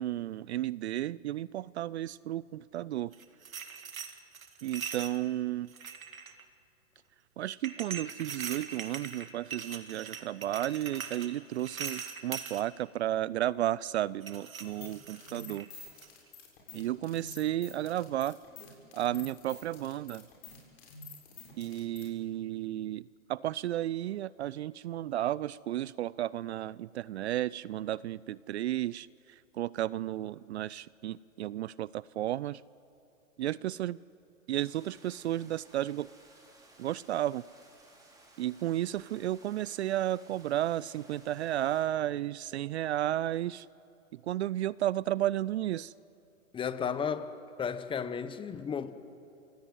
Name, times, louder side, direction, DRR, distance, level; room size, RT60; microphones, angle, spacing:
voice 1, 0.0-3.1 4.6-5.7 7.4-15.7 16.7-18.4 18.9-20.2 21.6-32.6 33.4-34.0 34.5-36.1 36.8-37.4 38.4-43.7 44.1-45.9, right 13 dB, 55° right, 22 dB, 0.5 m, -33 dB
sound 1, 3.1-5.2 5.7-6.4 7.6-12.6 14.2-15.7 16.0-16.3, right 6 dB, 80° right, 2.2 m, -41 dB
sound 2, 14.6-22.1, left 4 dB, 50° left, 6.9 m, -49 dB
sound 3, 34.5-41.8, right 2 dB, 10° right, 4.5 m, -59 dB
voice 2, 46.5-47.3 47.6-48.9, left 7 dB, 10° left, 13 dB, 1.0 m, -33 dB
28.0 x 17.5 x 9.2 m, 2.9 s
hypercardioid pair, 120°, 40 cm